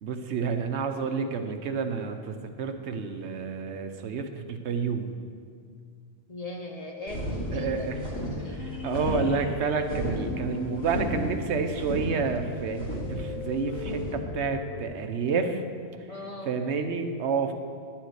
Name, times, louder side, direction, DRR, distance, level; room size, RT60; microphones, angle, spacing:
voice 1, 0.0-5.1 7.5-8.0 8.6-15.6 16.4-17.5, right 5 dB, 70° right, 7 dB, 1.0 m, -29 dB
voice 2, 6.3-7.9 8.4-8.6 16.1-16.6, left 1 dB, 40° left, 2 dB, 0.7 m, -39 dB
sound 1, 7.1-14.9, left 4 dB, 70° left, 0.9 m, -39 dB
sound 2, 7.1-14.1, right 1 dB, 20° left, 2.4 m, -34 dB
11.5 x 4.4 x 7.9 m, 2.2 s
omnidirectional pair, 1.2 m